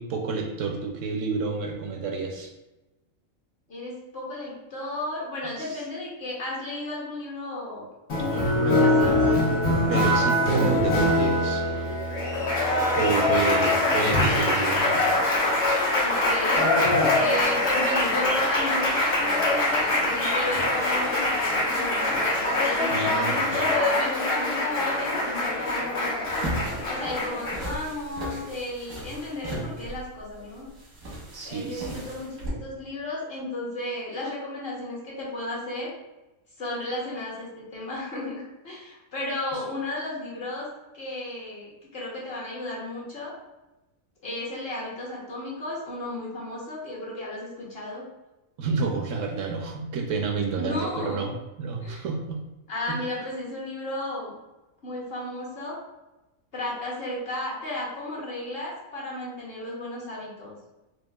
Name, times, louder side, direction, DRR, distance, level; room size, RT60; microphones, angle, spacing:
voice 1, 0.0-2.5 5.6-5.8 9.9-11.7 12.9-15.1 22.9-23.7 31.3-32.0 48.6-52.4 52.9-53.0, right 4 dB, 70° right, 2 dB, 0.9 m, -29 dB
voice 2, 3.7-7.9 8.2-9.2 13.0-13.3 13.6-14.0 16.0-16.7 17.1-22.2 22.6-26.3 26.8-30.7 31.4-35.9 36.6-40.7 40.9-43.3 44.2-48.0 50.6-51.3 51.8-52.0 52.7-54.3 54.8-55.8 56.5-60.6, left 1 dB, 50° left, -4 dB, 1.0 m, -34 dB
Applause, 8.1-27.8, left 1 dB, 70° left, 1.4 m, -23 dB
sound 1, 26.3-32.5, right 1 dB, 90° right, 1.7 m, -36 dB
4.5 x 2.5 x 2.3 m, 1.0 s
omnidirectional pair, 1.4 m